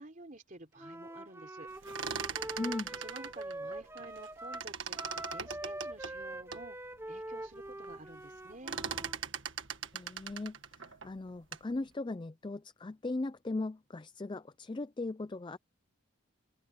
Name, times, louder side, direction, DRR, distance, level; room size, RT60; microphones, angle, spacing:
voice 1, 0.0-1.7 3.0-8.8, right 2 dB, 40° right, 3.5 m, -51 dB
Wind instrument woodwind instrument, 0.8-9.2, right 1 dB, 10° right, 1.0 m, -43 dB
sound 1, 1.7-4.3 4.5-6.7 7.2-7.3 7.5-7.9 8.2-11.7, right 7 dB, 60° right, 1.7 m, -40 dB
voice 2, 2.6-2.9 9.9-15.6, left 2 dB, 20° left, 0.4 m, -38 dB
head